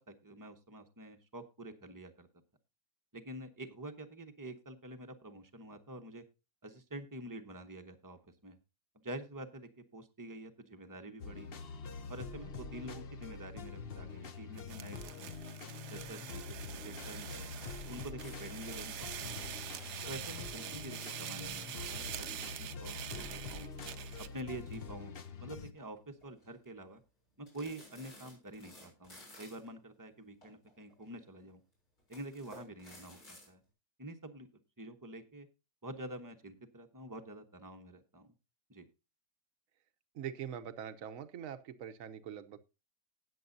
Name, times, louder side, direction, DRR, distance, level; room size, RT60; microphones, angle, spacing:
voice 1, 0.0-2.3 3.1-6.2 6.6-8.6 8.9-11.6 12.1-15.3 15.9-16.4 16.8-17.5 17.9-19.4 20.0-23.7 24.2-25.1 25.4-27.0 27.4-31.6 32.1-33.6 34.0-34.5 34.8-35.5 35.8-38.3 38.7-38.9, right 1 dB, 15° right, 6 dB, 0.9 m, -47 dB
sound 1, 11.2-25.7, left 5 dB, 45° left, 0.8 m, -45 dB
sound 2, 14.6-24.4, right 11 dB, 75° right, 1.3 m, -45 dB
sound 3, 17.0-22.6 23.0-25.3 25.6-25.8 26.2-26.7 27.5-29.7 30.4-31.2 32.0-33.5, left 1 dB, 65° left, 7.1 m, -56 dB
voice 2, 40.1-42.6, right 9 dB, 60° right, 10 dB, 1.2 m, -43 dB
19.0 x 7.3 x 2.7 m, 0.28 s
omnidirectional pair, 1.8 m